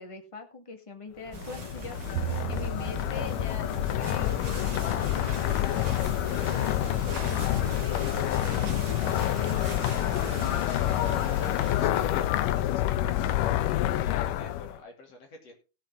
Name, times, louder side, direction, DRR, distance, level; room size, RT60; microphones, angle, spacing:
voice 1, 0.0-8.0 8.5-10.7, left 4 dB, 25° left, 5 dB, 0.6 m, -43 dB
sound 1, 1.3-14.8, left 13 dB, 90° left, 2.3 m, -28 dB
sound 2, 1.3-12.3, right 3 dB, 35° right, 2.5 m, -41 dB
Bowed string instrument, 2.1-8.5, right 15 dB, 80° right, 1.5 m, -41 dB
voice 2, 11.8-15.6, left 2 dB, 50° left, 2 dB, 3.9 m, -48 dB
17.5 x 7.4 x 3.8 m, 0.31 s
omnidirectional pair, 3.7 m